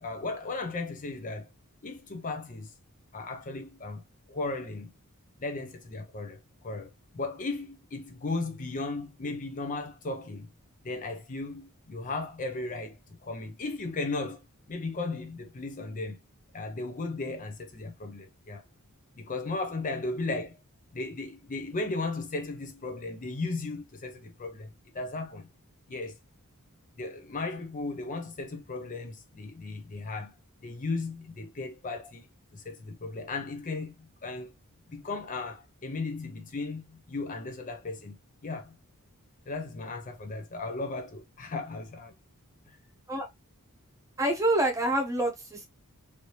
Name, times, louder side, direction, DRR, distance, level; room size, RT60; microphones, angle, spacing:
voice 1, 0.0-1.5 1.8-2.7 3.1-4.9 5.4-10.5 10.8-13.0 13.2-14.4 14.7-16.2 16.5-18.6 19.2-20.6 20.9-24.7 24.9-25.5 25.9-26.2 27.0-30.3 30.6-32.3 32.5-34.5 34.9-38.2 38.4-38.8 39.5-42.1, left 3 dB, 35° left, 0.5 m, -36 dB
voice 2, 44.2-45.7, right 1 dB, 15° right, 0.8 m, -26 dB
3.2 x 2.7 x 2.8 m
head